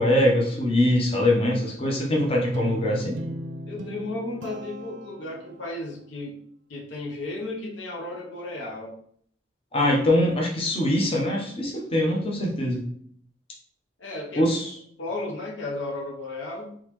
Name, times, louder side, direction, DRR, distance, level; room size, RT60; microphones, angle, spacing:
voice 1, 0.0-3.2 9.7-12.9 14.4-14.7, left 1 dB, 30° left, -2 dB, 0.8 m, -23 dB
Guitar, 2.5-5.8, right 1 dB, 65° right, 0.5 m, -37 dB
voice 2, 3.7-6.4 6.7-8.9 14.0-14.5 15.0-16.7, left 2 dB, 70° left, -1 dB, 0.7 m, -34 dB
3.9 x 3.0 x 3.0 m, 0.64 s
head